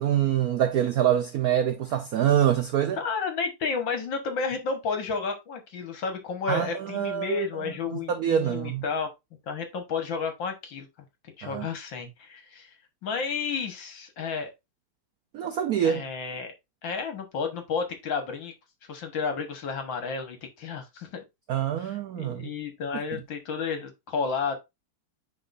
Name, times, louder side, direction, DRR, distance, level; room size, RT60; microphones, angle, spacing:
voice 1, 0.0-3.0 6.5-7.4 7.9-8.8 11.4-11.7 15.3-16.0 21.5-22.5, right 10 dB, 80° right, 0.8 m, -25 dB
voice 2, 3.0-9.1 9.5-10.9 11.4-12.7 13.0-14.5 15.8-16.5 16.8-18.5 18.9-21.2 21.8-24.6, left 5 dB, 65° left, 1.9 m, -31 dB
9.8 x 3.9 x 2.6 m
omnidirectional pair, 2.3 m